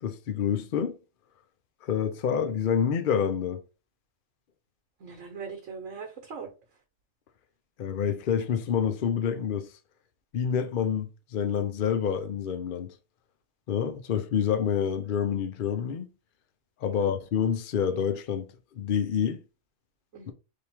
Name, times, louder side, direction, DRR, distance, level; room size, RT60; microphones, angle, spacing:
voice 1, 0.0-1.0 1.8-3.6 7.8-9.7 10.3-12.9 13.7-16.1 16.8-18.5 18.8-19.4 20.3-20.4, left 8 dB, 55° left, 0.6 m, -27 dB
voice 2, 5.0-6.5 16.9-17.1 20.1-20.3, right 5 dB, 70° right, 1.2 m, -40 dB
3.4 x 2.8 x 4.4 m
omnidirectional pair, 1.3 m